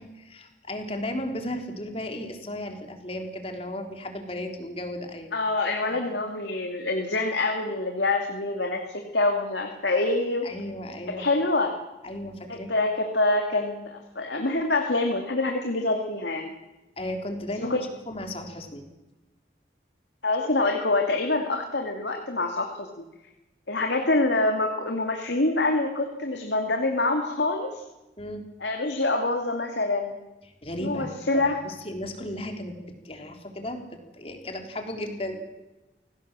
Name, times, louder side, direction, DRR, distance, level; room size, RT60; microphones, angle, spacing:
voice 1, 0.0-5.3 5.8-6.0 10.4-11.3 12.0-12.8 17.0-18.8 28.2-28.4 30.6-32.7 33.0-33.9 34.1-35.5, left 1 dB, 35° left, 4 dB, 3.7 m, -35 dB
voice 2, 5.3-10.5 11.1-11.8 12.5-16.5 17.6-17.8 20.2-22.9 23.7-27.8 28.6-30.2 30.8-31.6, left 2 dB, 80° left, 3 dB, 2.6 m, -26 dB
26.5 x 18.0 x 7.6 m, 1.1 s
head